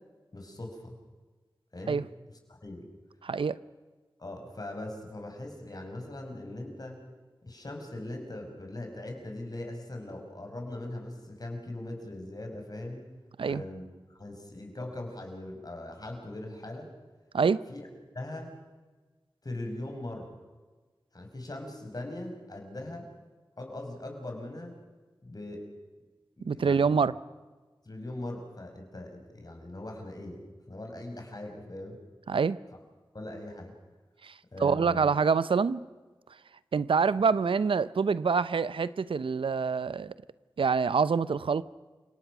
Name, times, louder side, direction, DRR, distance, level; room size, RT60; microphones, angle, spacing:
voice 1, 0.3-1.0 1.7-2.0 2.5-2.9 4.2-7.0 7.4-13.1 13.5-16.9 17.7-17.9 18.1-18.5 19.4-20.3 21.1-23.1 23.6-24.8 25.2-25.7 26.4-26.9 27.8-30.4 30.7-32.0 33.1-33.7 34.5-35.1, left 1 dB, 45° left, 5.6 m, -40 dB
voice 2, 3.2-3.6 13.4-13.6 17.3-17.6 26.4-27.1 32.3-32.6 34.2-35.8 36.7-40.1 40.6-41.6, right 5 dB, 80° right, 0.6 m, -26 dB
29.5 x 18.0 x 6.1 m
cardioid pair, 40°, 9 cm